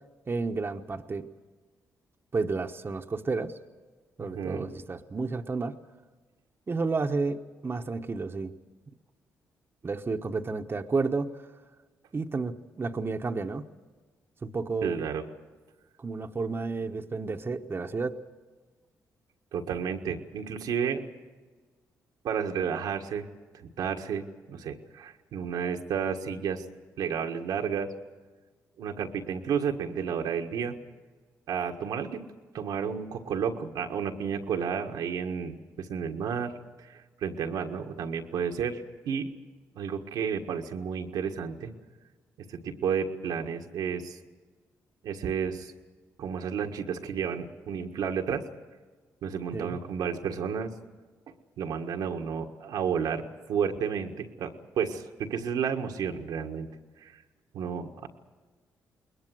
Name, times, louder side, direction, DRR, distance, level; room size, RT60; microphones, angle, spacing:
voice 1, 0.3-1.3 2.3-3.6 4.2-5.8 6.7-8.5 9.8-11.4 12.1-13.6 14.4-15.0 16.0-18.2 49.5-49.8, right 4 dB, 35° right, 5 dB, 1.1 m, -31 dB
voice 2, 4.2-4.7 14.8-15.2 19.5-21.0 22.2-23.3 23.5-26.6 27.0-27.9 28.8-30.7 31.5-32.2 32.5-36.5 36.8-39.3 39.7-41.7 42.5-44.2 45.0-45.7 46.2-48.4 49.2-50.7 51.6-53.2 53.5-56.7 57.0-57.2 57.5-58.1, right 7 dB, 80° right, 4 dB, 1.6 m, -31 dB
20.5 x 20.5 x 7.8 m, 1.4 s
supercardioid pair, 60°, 7 cm